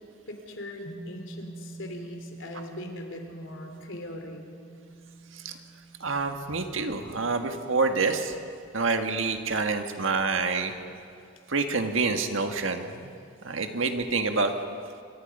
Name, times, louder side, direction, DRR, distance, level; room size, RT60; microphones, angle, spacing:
voice 1, 0.3-4.4, left 1 dB, 70° left, 4 dB, 3.4 m, -40 dB
sound 1, 0.8-9.3, right 2 dB, 40° left, 5.2 m, -46 dB
voice 2, 6.0-8.3 8.7-10.7 11.5-13.1 13.4-14.5, right 4 dB, 75° right, 6 dB, 1.8 m, -27 dB
27.5 x 24.0 x 5.5 m, 2.5 s
head